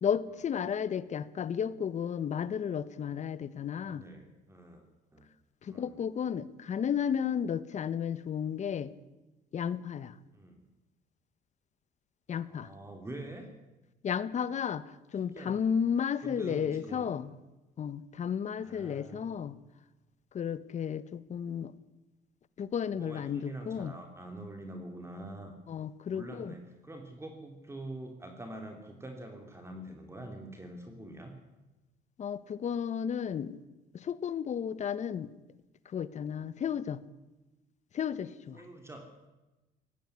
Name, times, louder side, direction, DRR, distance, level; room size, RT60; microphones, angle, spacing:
voice 1, 0.0-4.0 5.6-8.9 9.5-10.2 12.3-12.7 14.0-17.3 17.8-19.6 20.3-21.7 22.6-23.9 25.7-26.5 32.2-33.6 33.9-35.3 35.9-37.0 37.9-38.6, left 8 dB, 45° left, 16 dB, 1.1 m, -33 dB
voice 2, 3.8-4.8 5.1-5.3 5.7-6.0 10.3-10.7 12.4-13.5 15.2-15.6 16.2-17.1 18.6-19.4 21.6-21.7 22.9-25.5 26.1-31.3 38.5-39.1, right 1 dB, 15° right, 4 dB, 3.0 m, -45 dB
18.5 x 14.0 x 9.9 m, 1.1 s
cardioid pair, 110°, 17 cm